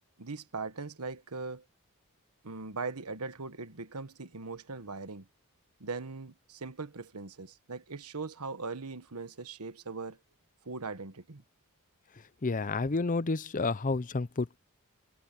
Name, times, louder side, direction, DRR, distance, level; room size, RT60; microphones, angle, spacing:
voice 1, 0.2-1.6 2.4-5.3 5.8-10.2 10.6-11.4, right 4 dB, 90° right, 1.4 m, -40 dB
voice 2, 12.4-14.6, left 3 dB, 35° left, 0.6 m, -30 dB
head